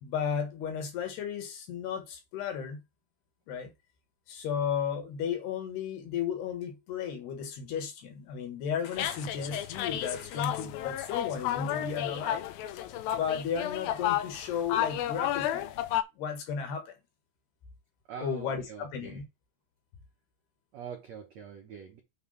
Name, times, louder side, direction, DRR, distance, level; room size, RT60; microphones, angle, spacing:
voice 1, 0.0-2.8 3.5-3.7 4.3-12.5 13.1-15.7 16.2-17.0 18.2-19.2, left 7 dB, 65° left, 3.5 m, -34 dB
sound 1, 9.0-16.0, left 12 dB, 85° left, 2.1 m, -32 dB
voice 2, 18.1-19.2 20.7-22.0, right 7 dB, 85° right, 1.5 m, -44 dB
9.4 x 3.3 x 5.6 m
omnidirectional pair, 5.2 m